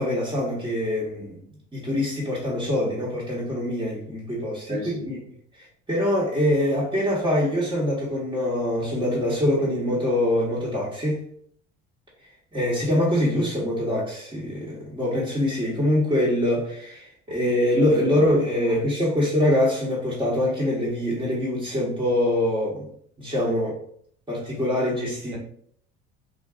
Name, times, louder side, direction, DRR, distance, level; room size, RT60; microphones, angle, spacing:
voice 1, 0.0-1.4 1.7-5.2 5.6-11.2 12.5-22.9 23.2-23.8 24.3-25.4, left 1 dB, 15° right, 1.0 m, -24 dB
voice 2, 4.7-5.1, equal, 85° right, 1.0 m, -34 dB
3.6 x 2.2 x 2.4 m
hypercardioid pair, 70°, 31 cm